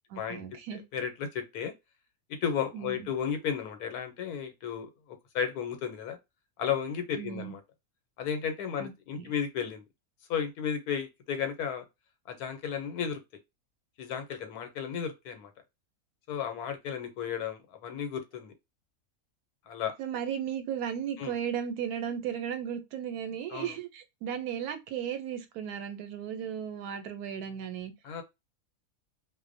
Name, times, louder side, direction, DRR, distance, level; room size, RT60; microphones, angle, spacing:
voice 1, 0.1-0.8 2.7-3.1 7.2-7.5 8.8-9.3 20.0-27.9, right 8 dB, 90° right, 1.1 m, -35 dB
voice 2, 0.9-1.7 2.4-6.2 6.6-7.6 8.2-9.8 10.3-11.8 12.3-13.2 14.0-15.5 16.3-18.5 19.7-19.9 21.2-21.3 23.5-23.8 28.0-28.2, left 7 dB, 90° left, 1.2 m, -33 dB
2.5 x 2.1 x 2.5 m
omnidirectional pair, 1.6 m